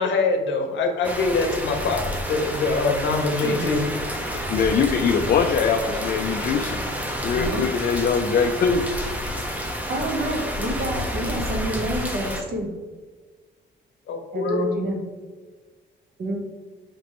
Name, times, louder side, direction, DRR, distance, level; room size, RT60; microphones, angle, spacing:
voice 1, 0.0-3.9 14.1-14.6, left 3 dB, 70° left, 4 dB, 0.8 m, -24 dB
sound 1, 1.0-12.4, equal, 5° right, 0.7 m, -29 dB
voice 2, 3.2-3.9 7.3-7.7 9.9-12.7 14.3-15.0 16.2-16.4, right 1 dB, 50° right, 1 dB, 1.1 m, -28 dB
voice 3, 4.5-6.8 7.2-9.2, left 6 dB, 50° left, 4 dB, 0.4 m, -22 dB
5.1 x 3.0 x 3.0 m, 1.4 s
cardioid pair, 90°, 20 cm